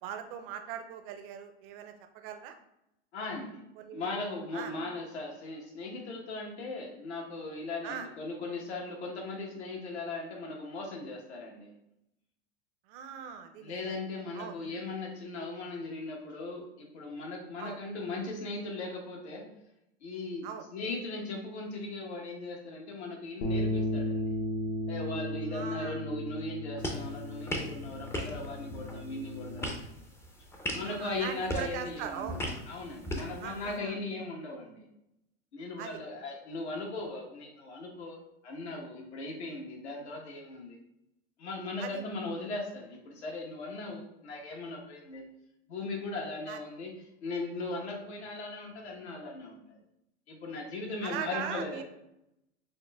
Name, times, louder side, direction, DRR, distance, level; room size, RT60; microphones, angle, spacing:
voice 1, 0.0-2.6 3.8-4.0 4.5-4.7 7.8-8.1 12.9-14.0 14.3-14.6 17.6-17.8 20.4-20.6 25.5-26.0 30.8-32.4 33.4-34.0 35.8-36.0 41.8-42.0 46.5-46.6 51.0-51.8, right 8 dB, 55° right, 7 dB, 0.6 m, -40 dB
voice 2, 3.1-3.6 3.9-11.7 13.6-19.5 20.0-24.3 24.9-29.9 30.7-32.4 32.7-34.9 35.5-40.8 41.4-45.2 45.7-49.8 50.3-51.8, left 2 dB, 85° left, 0 dB, 1.2 m, -38 dB
sound 1, 23.4-29.7, left 1 dB, 65° left, 0.8 m, -35 dB
sound 2, 26.8-33.8, equal, 10° left, 0.4 m, -39 dB
6.2 x 2.1 x 2.2 m, 0.83 s
hypercardioid pair, 105°, 33 cm